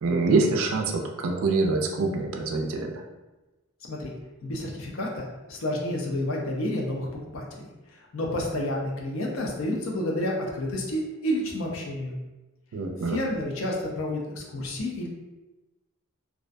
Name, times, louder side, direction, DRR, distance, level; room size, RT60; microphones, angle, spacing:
voice 1, 0.0-3.0 12.7-13.2, right 3 dB, 75° right, 3 dB, 0.4 m, -25 dB
voice 2, 4.4-7.1 7.3-7.7 8.1-12.2 13.1-15.1, left 1 dB, 70° left, -1 dB, 0.5 m, -30 dB
2.4 x 2.1 x 2.5 m, 1.1 s
head